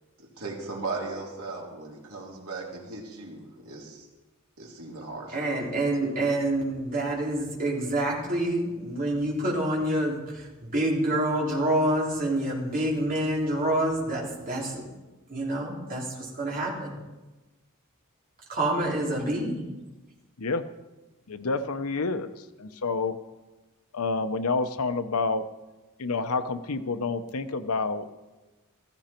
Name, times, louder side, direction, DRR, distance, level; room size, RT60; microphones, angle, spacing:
voice 1, 0.2-4.1 4.6-5.4, right 3 dB, 80° right, -2 dB, 3.5 m, -37 dB
voice 2, 5.3-14.9 15.3-17.0 18.5-19.6, right 1 dB, 40° right, -4 dB, 3.8 m, -27 dB
voice 3, 21.3-22.3 22.6-23.2 23.9-25.5 26.0-28.1, left 3 dB, 90° left, 10 dB, 0.8 m, -28 dB
15.0 x 14.5 x 4.5 m, 1.1 s
head